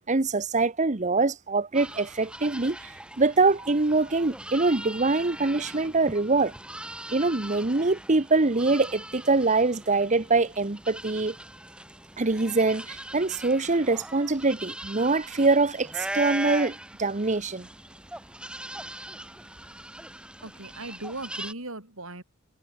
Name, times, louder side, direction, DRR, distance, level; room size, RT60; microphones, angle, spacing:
voice 1, 0.1-2.9 3.2-6.5 7.1-11.4 12.2-17.7, right 3 dB, 35° right, 1.0 m, -24 dB
sound 1, 1.7-21.5, right 1 dB, 5° right, 1.7 m, -40 dB
voice 2, 20.4-22.2, right 2 dB, 65° right, 6.6 m, -38 dB
head